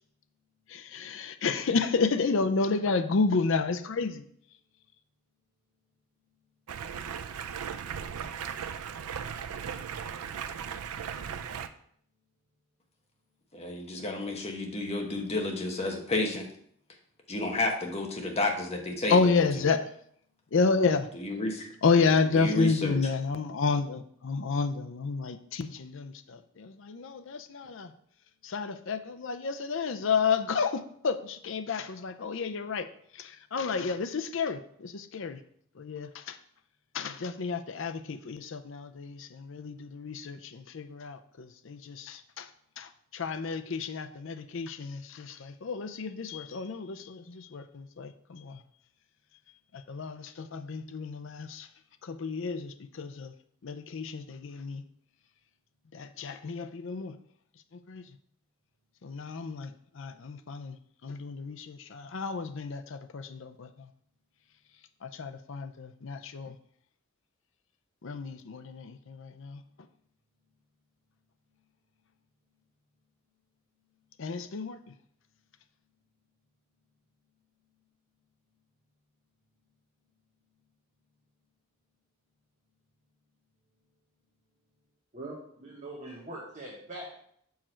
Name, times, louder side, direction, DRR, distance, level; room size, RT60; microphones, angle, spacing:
voice 1, 0.7-4.2 19.1-19.9 20.5-21.1 21.8-27.9 28.4-32.9 33.2-35.4 35.8-36.4 36.9-42.5 42.8-48.6 49.9-51.7 52.0-53.3 53.6-54.8 55.9-57.1 57.9-58.0 59.0-59.7 60.0-60.8 61.0-63.7 65.0-66.5 68.0-69.6 74.2-74.8, left 4 dB, 60° left, 9 dB, 0.5 m, -31 dB
Stream, 6.7-11.7, right 7 dB, 85° right, 0.4 m, -37 dB
voice 2, 13.5-16.4 17.3-19.7 21.1-21.7 22.0-23.0, left 2 dB, 30° left, 2 dB, 1.0 m, -31 dB
voice 3, 85.1-87.2, right 1 dB, 35° right, -3 dB, 1.1 m, -42 dB
6.1 x 4.8 x 4.4 m, 0.66 s
head